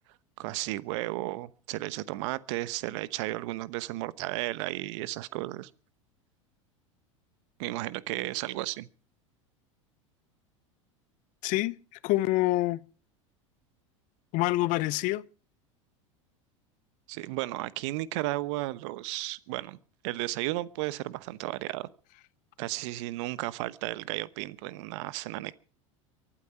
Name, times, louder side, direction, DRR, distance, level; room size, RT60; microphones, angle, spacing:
voice 1, 0.4-5.7 7.6-8.9 17.1-19.8 20.0-21.9 22.6-25.5, right 18 dB, 65° right, 1.0 m, -34 dB
voice 2, 11.4-11.8 12.0-12.8 14.3-15.2, left 18 dB, 50° left, 0.7 m, -26 dB
23.5 x 8.9 x 5.8 m
hypercardioid pair, 85°, 17 cm